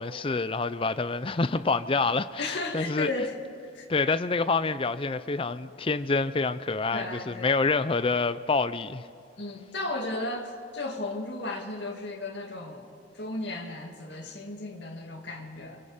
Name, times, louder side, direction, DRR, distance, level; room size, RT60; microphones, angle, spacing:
voice 1, 0.0-3.1 3.9-9.0, left 3 dB, 30° left, 0.5 m, -27 dB
voice 2, 2.4-3.4 3.7-4.1 6.9-7.5 9.4-15.8, left 2 dB, 60° left, 2.3 m, -35 dB
29.0 x 24.0 x 5.1 m
head